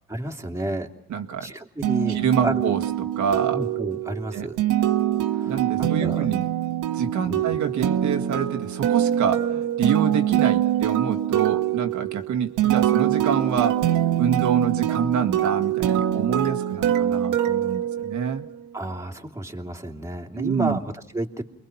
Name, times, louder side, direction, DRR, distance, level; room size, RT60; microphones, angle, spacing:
voice 1, 0.1-0.9 1.4-2.7 3.5-4.6 5.3-6.3 7.3-7.4 18.7-21.4, right 1 dB, 10° right, 1 dB, 2.6 m, -31 dB
voice 2, 1.1-1.5 2.1-3.6 4.3-4.5 5.5-6.5 6.9-13.9 14.2-18.5 20.4-20.8, right 7 dB, 70° right, 5 dB, 1.7 m, -26 dB
sound 1, 1.8-18.5, right 11 dB, 90° right, 1.7 m, -24 dB
29.0 x 22.5 x 5.8 m, 0.74 s
cardioid pair, 90°, 30 cm